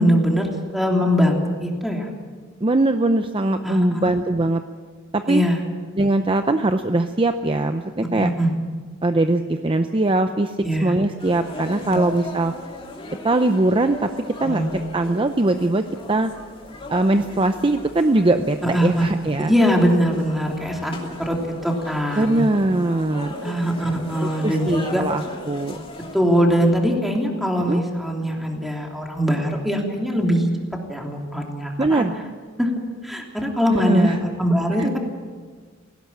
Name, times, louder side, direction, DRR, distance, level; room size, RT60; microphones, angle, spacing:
voice 1, 0.0-2.1 3.6-4.1 5.3-5.6 8.1-8.5 10.6-10.9 14.4-14.7 18.6-19.1 19.4-20.9 21.2-21.4 21.6-22.4 23.4-25.0 26.1-30.5 30.9-32.1 32.6-32.7 33.0-35.0, equal, ahead, 0 dB, 3.1 m, -21 dB
voice 2, 2.6-4.6 5.1-5.4 6.0-8.3 9.0-10.6 10.8-12.5 13.2-14.1 14.4-14.7 14.9-16.3 16.9-19.5 22.2-23.3 24.2-25.8 27.6-27.8 31.8-32.1 33.7-34.2 34.8-34.9, right 2 dB, 25° right, 8 dB, 0.6 m, -21 dB
sound 1, 11.2-26.2, left 1 dB, 30° left, 2.8 m, -37 dB
17.5 x 17.0 x 8.6 m, 1.5 s
head